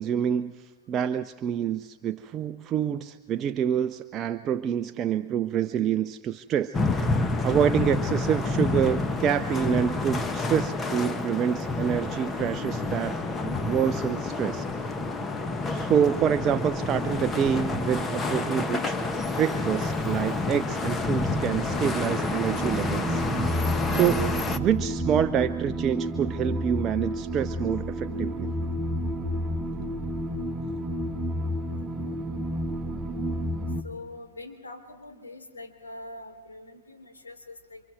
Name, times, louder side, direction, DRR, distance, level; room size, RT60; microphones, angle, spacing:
voice 1, 0.0-7.1 7.4-13.2 13.4-14.9 15.6-19.0 19.4-28.5, right 9 dB, 30° right, 10 dB, 0.6 m, -27 dB
sound 1, 6.7-24.6, left 3 dB, 20° left, 1.4 m, -29 dB
sound 2, 21.7-33.8, equal, 10° right, 1.5 m, -30 dB
voice 2, 33.8-37.8, left 2 dB, 75° left, 5 dB, 3.4 m, -43 dB
29.5 x 26.0 x 4.7 m, 1.2 s
figure-of-eight pair, 90°, 0 cm